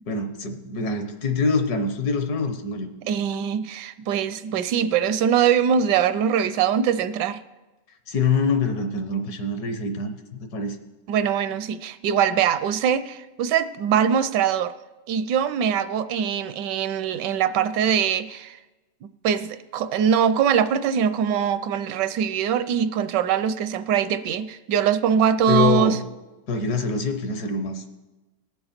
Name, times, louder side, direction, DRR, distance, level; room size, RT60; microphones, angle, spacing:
voice 1, 0.1-2.9 8.1-10.2 10.5-10.8 25.5-26.0 26.5-27.9, left 4 dB, 65° left, 1.5 m, -25 dB
voice 2, 3.0-7.4 11.1-14.7 15.1-18.6 19.2-26.0, right 8 dB, 80° right, 1.2 m, -22 dB
18.5 x 6.8 x 4.3 m
omnidirectional pair, 1.9 m